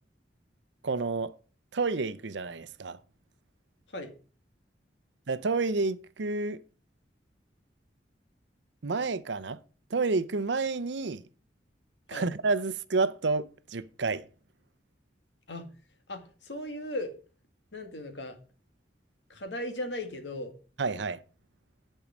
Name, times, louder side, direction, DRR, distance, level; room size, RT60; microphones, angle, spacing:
voice 1, 0.8-1.3 1.7-3.0 5.3-6.6 8.8-9.6 9.9-11.2 12.1-14.2 20.8-21.2, right 3 dB, 85° right, 0.7 m, -29 dB
voice 2, 16.1-17.1 17.7-18.4 19.3-20.5, left 1 dB, 80° left, 2.0 m, -37 dB
10.5 x 5.5 x 6.2 m
head